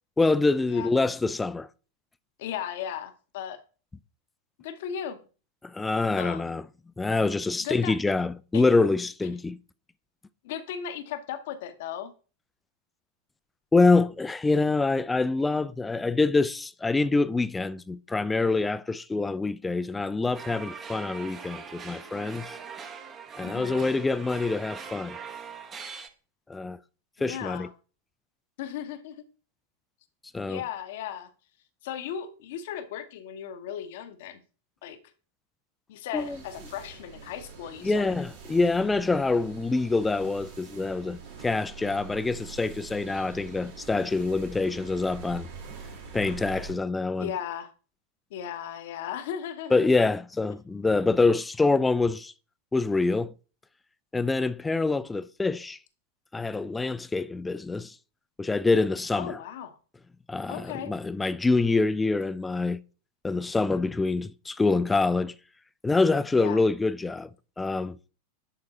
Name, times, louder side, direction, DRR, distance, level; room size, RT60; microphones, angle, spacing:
voice 1, 0.2-1.7 5.6-6.6 7.0-9.6 13.7-22.6 23.4-25.2 26.5-26.8 27.2-27.7 30.3-30.6 36.1-36.4 37.8-45.5 46.1-47.3 49.7-52.3 52.7-53.3 54.1-55.8 56.3-57.9 58.4-59.4 60.3-62.8 63.2-65.3 65.8-67.3 67.6-68.0, left 3 dB, 10° left, 0.4 m, -25 dB
voice 2, 2.4-3.6 4.6-5.2 6.2-6.5 7.6-8.0 8.5-8.6 10.4-12.1 23.4-23.9 27.2-27.7 28.6-29.2 30.5-31.3 31.8-34.4 34.8-35.0 35.9-38.1 47.2-47.7 48.3-49.9 59.1-59.8 60.5-60.9 66.4-66.6, left 9 dB, 55° left, 0.8 m, -36 dB
sound 1, 20.3-26.1, right 6 dB, 25° right, 0.8 m, -41 dB
sound 2, 36.1-46.7, right 4 dB, 55° right, 2.0 m, -44 dB
10.5 x 3.7 x 2.9 m
figure-of-eight pair, 90°, 0 cm